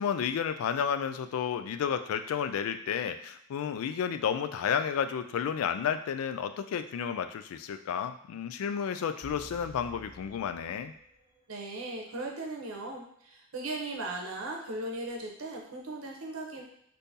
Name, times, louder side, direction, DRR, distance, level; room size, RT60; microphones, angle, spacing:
voice 1, 0.0-10.9, left 7 dB, 90° left, 13 dB, 0.3 m, -31 dB
sound 1, 9.2-11.4 11.7-11.8, right 1 dB, 40° right, 0.9 m, -51 dB
voice 2, 11.5-16.6, right 2 dB, 80° right, 0 dB, 0.7 m, -38 dB
3.6 x 2.7 x 2.7 m, 0.70 s
head